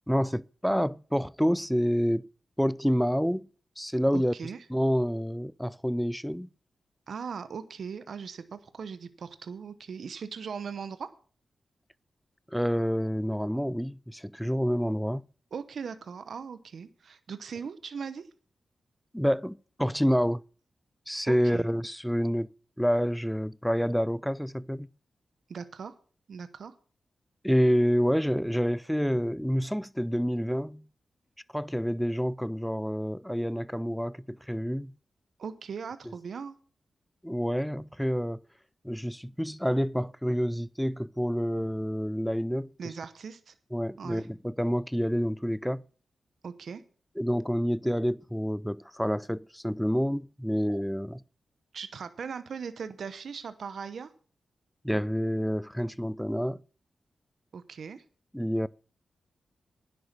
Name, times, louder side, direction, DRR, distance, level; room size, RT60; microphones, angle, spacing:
voice 1, 0.1-2.3 2.6-3.4 3.8-4.3 4.7-6.5 12.5-15.2 19.1-20.4 21.1-22.5 22.8-24.9 27.4-30.8 31.5-34.9 37.2-38.4 38.8-42.9 43.7-45.8 47.2-51.2 54.8-56.6 58.3-58.7, equal, ahead, 0.4 m, -28 dB
voice 2, 4.1-4.6 7.1-11.1 15.5-18.3 21.3-21.7 25.5-26.0 26.3-26.8 35.4-36.6 42.8-43.5 44.0-44.3 46.4-46.8 51.7-54.1 57.5-58.0, right 6 dB, 75° right, 0.9 m, -39 dB
10.5 x 8.0 x 5.9 m
cardioid pair, 70°, 0 cm